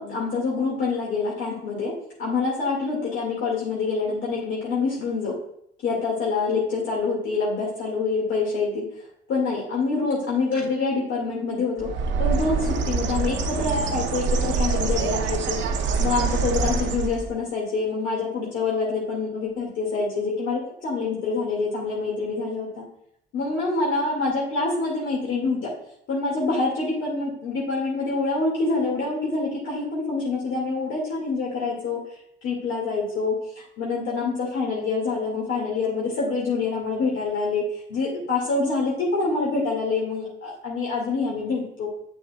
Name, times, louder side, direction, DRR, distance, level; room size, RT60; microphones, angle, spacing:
voice 1, 0.0-1.9 2.2-5.3 5.8-8.8 9.3-11.9 12.2-15.6 16.0-22.9 23.3-25.7 26.1-32.0 32.4-37.6 37.9-41.9, left 4 dB, 80° left, -4 dB, 2.0 m, -26 dB
Bird, 11.8-17.4, right 4 dB, 70° right, 0.8 m, -25 dB
7.7 x 6.4 x 2.3 m, 0.73 s
cardioid pair, 90°, 20 cm